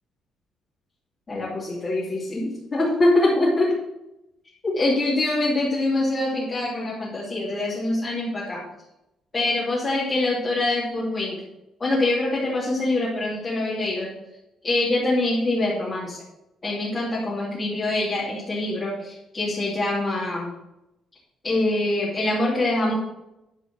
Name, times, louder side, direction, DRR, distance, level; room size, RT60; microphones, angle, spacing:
voice 1, 1.3-3.7 4.6-8.6 9.3-11.4 11.8-14.1 14.6-16.2 16.6-20.5 21.4-23.0, left 2 dB, 25° left, -8 dB, 2.9 m, -24 dB
11.0 x 5.0 x 6.4 m, 0.90 s
cardioid pair, 140°, 0 cm